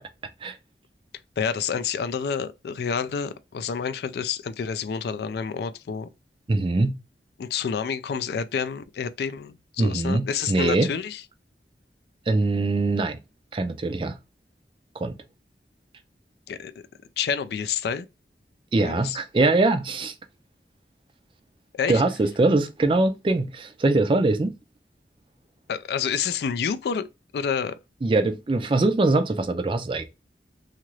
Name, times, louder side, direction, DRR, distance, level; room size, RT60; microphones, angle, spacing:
voice 1, 1.4-6.1 7.4-11.2 16.5-16.7 17.2-18.1 18.8-19.2 21.7-22.0 25.7-27.1 27.3-27.8, left 6 dB, 65° left, 0.3 m, -28 dB
voice 2, 6.5-7.0 9.8-10.9 12.3-13.2 13.5-14.2 15.0-15.2 18.7-20.1 21.9-24.6 28.0-30.1, right 2 dB, 30° right, 0.3 m, -22 dB
2.8 x 2.4 x 3.0 m
head